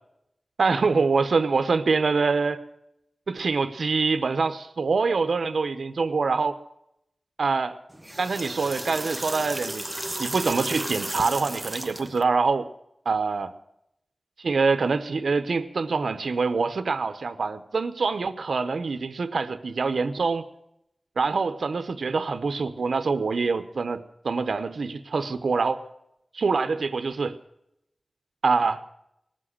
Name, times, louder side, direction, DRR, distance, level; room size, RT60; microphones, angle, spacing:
voice 1, 0.6-2.6 3.3-6.6 7.4-7.8 8.2-9.9 10.2-12.7 13.1-13.5 14.4-20.5 21.2-25.8 26.3-27.4 28.4-28.9, right 4 dB, 85° right, 11 dB, 0.8 m, -25 dB
sound 1, 7.9-12.2, right 1 dB, 15° right, 1.0 m, -34 dB
19.0 x 7.6 x 9.9 m, 0.81 s
wide cardioid pair, 90°, 0 cm